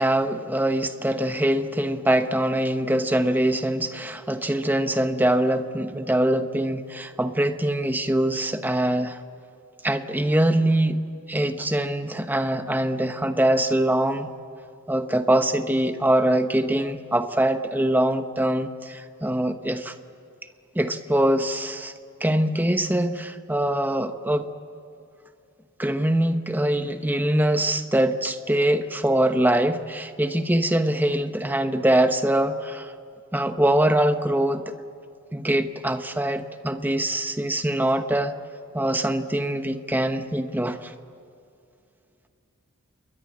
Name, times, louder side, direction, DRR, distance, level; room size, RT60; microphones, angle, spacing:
voice 1, 0.0-9.2 9.8-11.0 11.3-14.3 14.9-19.9 20.7-21.9 22.2-24.5 25.8-32.9 33.3-34.7 35.3-38.3 38.7-40.9, right 1 dB, 10° right, 8 dB, 1.1 m, -23 dB
29.0 x 22.0 x 8.7 m, 2.5 s
head